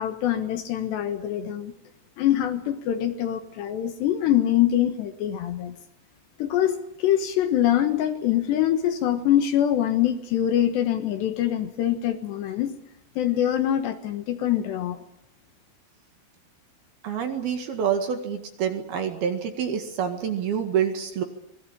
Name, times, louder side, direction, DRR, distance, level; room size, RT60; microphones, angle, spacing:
voice 1, 0.0-1.7 2.2-5.8 6.4-12.8 13.2-15.0, left 11 dB, 70° left, 8 dB, 3.1 m, -24 dB
voice 2, 17.0-21.2, right 8 dB, 60° right, 6 dB, 3.3 m, -27 dB
26.0 x 20.5 x 8.6 m, 0.76 s
omnidirectional pair, 5.8 m